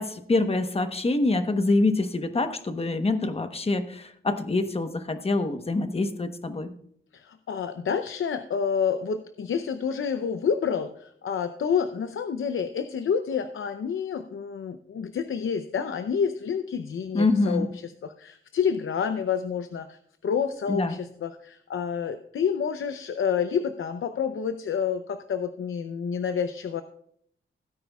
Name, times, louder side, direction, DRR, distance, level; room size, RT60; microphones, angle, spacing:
voice 1, 0.0-6.7 17.1-17.7 20.7-21.0, left 2 dB, 30° left, 8 dB, 1.1 m, -25 dB
voice 2, 7.1-26.8, left 7 dB, 75° left, 9 dB, 0.7 m, -29 dB
17.0 x 9.3 x 2.4 m, 0.66 s
wide cardioid pair, 110°, 21 cm